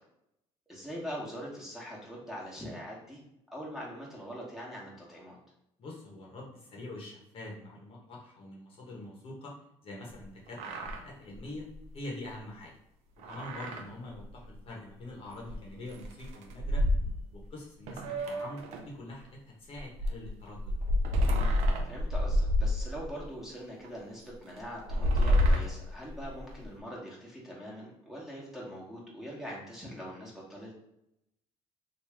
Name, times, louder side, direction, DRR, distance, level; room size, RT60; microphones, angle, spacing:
voice 1, 0.7-3.2 3.5-5.4 13.5-13.7 21.8-30.7, equal, 5° right, -5 dB, 1.2 m, -42 dB
voice 2, 5.8-9.5 9.8-11.7 11.9-12.7 13.2-16.8 17.3-20.8, left 1 dB, 55° left, -2 dB, 1.1 m, -44 dB
sound 1, 10.5-11.0 11.3-11.4 11.7-11.8 13.2-13.8 14.2-14.3 15.5-15.6 15.9-17.5 17.9-18.9 19.7-23.3 23.8-23.9 24.7-26.6, left 1 dB, 70° right, 0.6 m, -28 dB
3.0 x 2.7 x 3.4 m, 0.82 s
cardioid pair, 100°, 12 cm